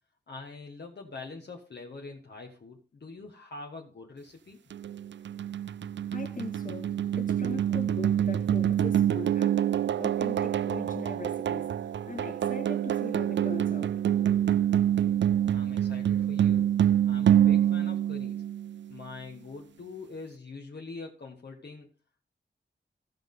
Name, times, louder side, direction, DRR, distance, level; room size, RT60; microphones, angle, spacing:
voice 1, 0.3-4.6 15.5-16.7 17.1-18.4 18.9-21.9, left 3 dB, 60° left, 1.6 m, -44 dB
sound 1, 4.7-18.9, right 10 dB, 70° right, 0.4 m, -26 dB
voice 2, 6.1-9.7 10.0-14.0, left 3 dB, 45° left, 2.1 m, -40 dB
15.5 x 5.7 x 3.9 m
wide cardioid pair, 125°, 20 cm